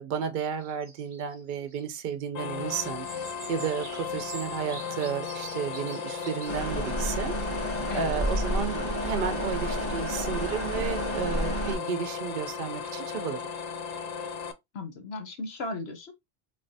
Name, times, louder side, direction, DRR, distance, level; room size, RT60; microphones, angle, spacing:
voice 1, 0.0-7.4 7.9-13.4, right 7 dB, 60° right, 0.6 m, -33 dB
sound 1, 0.6-2.0 2.8-7.0, right 4 dB, 30° right, 0.8 m, -47 dB
sound 2, 2.3-14.5, left 6 dB, 55° left, 0.4 m, -36 dB
sound 3, 6.5-11.8, equal, 10° left, 1.4 m, -30 dB
voice 2, 14.7-16.1, left 3 dB, 70° left, 1.2 m, -36 dB
3.3 x 3.2 x 2.6 m
omnidirectional pair, 1.1 m